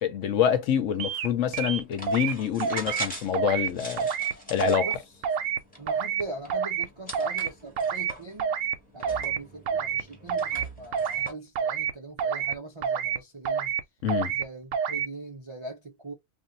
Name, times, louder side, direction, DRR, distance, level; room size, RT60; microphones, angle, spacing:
voice 1, 0.0-4.1 4.5-4.9 14.0-14.3, left 9 dB, 70° left, 1.0 m, -26 dB
sound 1, 1.0-1.3 1.5-2.3 2.6-3.1 3.3-3.7 4.0-4.3 4.6-5.0 5.2-5.6 5.9-6.2 6.5-6.8 7.1-7.5 7.8-8.1 8.4-8.7 9.0-9.4 9.7-10.0 10.3-10.6 10.9-11.3 11.5-11.9 12.2-12.5 12.8-13.2 13.4-13.8 14.1-14.4 14.7-15.1, right 7 dB, 70° right, 0.9 m, -28 dB
sound 2, 1.3-11.3, equal, 10° left, 0.7 m, -43 dB
voice 2, 4.8-5.1 5.8-8.5 8.9-13.7 14.3-16.1, right 2 dB, 50° right, 0.3 m, -41 dB
2.5 x 2.2 x 3.9 m
omnidirectional pair, 1.5 m